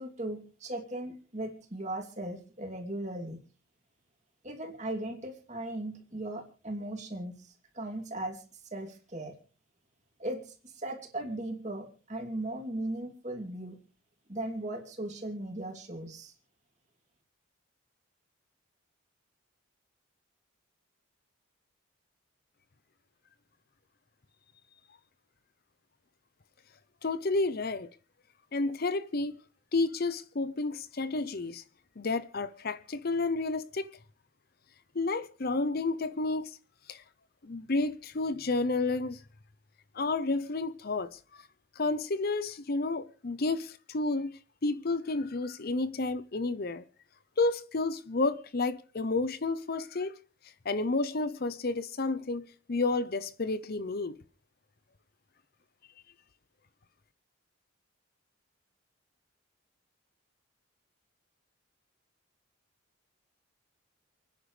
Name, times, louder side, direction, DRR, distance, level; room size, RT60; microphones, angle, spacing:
voice 1, 0.0-3.4 4.4-8.4 8.7-9.3 10.2-13.8 14.3-16.3, right 1 dB, 35° right, 2.8 m, -38 dB
voice 2, 27.0-27.9 28.5-29.4 29.7-31.6 32.0-33.9 34.9-36.6 36.9-37.0 37.4-39.2 39.9-41.5 41.8-46.8 47.4-50.1 50.6-54.2, left 3 dB, 45° left, 0.6 m, -31 dB
29.5 x 10.0 x 3.2 m
head